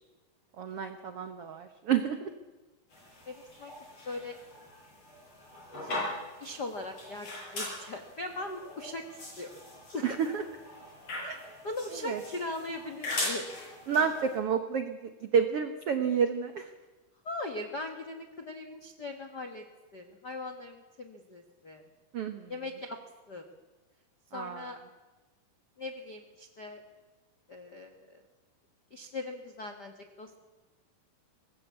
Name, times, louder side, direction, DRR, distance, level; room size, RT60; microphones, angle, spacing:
voice 1, 0.6-2.3 10.0-10.4 11.3-11.4 12.0-12.2 13.9-16.7 22.1-22.5 24.3-24.7, right 7 dB, 80° right, 8 dB, 1.3 m, -30 dB
sound 1, 2.9-14.4, left 1 dB, 40° left, 8.7 m, -40 dB
voice 2, 3.3-3.7 4.0-4.4 5.8-6.1 6.4-9.6 9.9-10.0 11.2-11.4 11.6-13.5 17.2-19.6 19.9-21.8 22.5-23.0 23.3-23.5 24.3-24.8 25.8-26.8 27.5-28.2 28.9-30.4, left 2 dB, 60° left, 6 dB, 1.1 m, -40 dB
24.0 x 19.5 x 8.3 m, 1.2 s
omnidirectional pair, 4.4 m